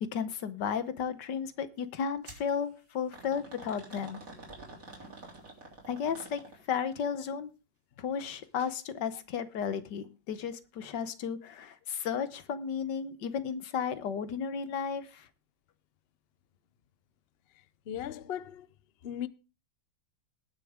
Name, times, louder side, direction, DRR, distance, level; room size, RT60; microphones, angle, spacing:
voice 1, 0.0-4.2 5.9-6.4 6.7-7.5 8.0-15.3, left 7 dB, 70° left, 1.6 m, -34 dB
sound 1, 2.2-2.5 3.1-6.8 8.4-8.7 9.1-9.2 10.0-10.1, right 2 dB, 45° right, 3.8 m, -48 dB
voice 2, 17.9-18.7 19.0-19.3, left 10 dB, 85° left, 0.5 m, -37 dB
20.0 x 6.7 x 3.7 m
omnidirectional pair, 2.0 m